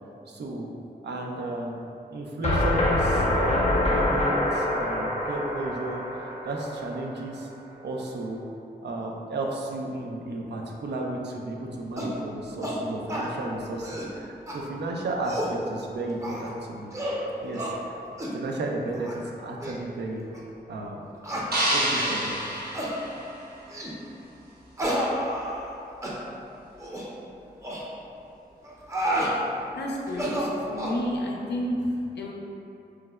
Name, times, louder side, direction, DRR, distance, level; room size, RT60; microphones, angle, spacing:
voice 1, 0.3-0.7 1.0-1.8 2.1-7.5 7.8-8.4 8.8-16.9 17.4-18.0 18.3-20.2 20.7-21.0 21.7-22.3, right 2 dB, 80° right, 0 dB, 0.4 m, -33 dB
sound 1, 2.4-7.4, left 1 dB, 40° left, 0.6 m, -26 dB
sound 2, 12.0-12.2 12.6-12.8 13.1-13.3 13.7-14.1 14.5-14.6 15.1-15.6 16.2-16.5 16.9-17.2 17.5-17.7 18.2-18.4 18.9-19.2 19.6-19.7 20.3-20.4 21.2-21.5 22.0-22.2 22.7-22.9 23.7-24.0 24.8-25.7 26.0-26.2 26.8-27.1 27.6-27.8 28.6-29.3 30.1-31.0, equal, 15° right, 0.5 m, -30 dB
sound 3, 21.5-23.8, right 1 dB, 65° right, 0.8 m, -28 dB
voice 2, 29.7-32.3, equal, 85° left, -1 dB, 0.4 m, -30 dB
4.4 x 2.1 x 2.2 m, 2.7 s
wide cardioid pair, 75°, 17 cm